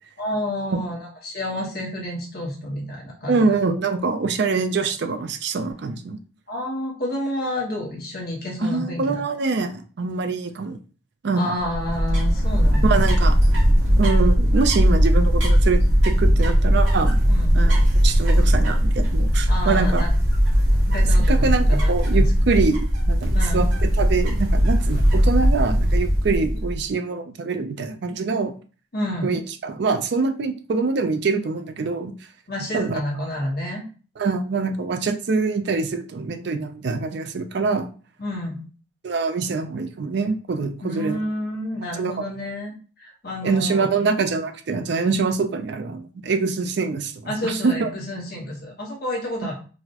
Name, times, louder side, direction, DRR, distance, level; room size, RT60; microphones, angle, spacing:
voice 1, 0.2-3.6 6.5-9.2 11.3-13.0 17.3-17.6 19.5-20.1 20.8-22.2 23.3-23.6 28.9-29.3 32.5-33.8 38.2-38.6 40.8-43.9 47.2-49.5, left 1 dB, 50° left, -2 dB, 1.2 m, -30 dB
voice 2, 3.3-6.2 8.6-10.8 11.2-11.6 12.8-13.4 14.0-17.2 17.5-20.0 21.3-23.7 24.0-28.5 29.2-32.2 32.7-33.0 34.2-37.9 39.0-41.2 42.0-42.2 43.4-47.9, right 4 dB, 55° right, 8 dB, 0.4 m, -24 dB
sound 1, 11.6-26.8, equal, 70° right, 1.1 m, -18 dB
4.1 x 2.1 x 2.8 m, 0.38 s
head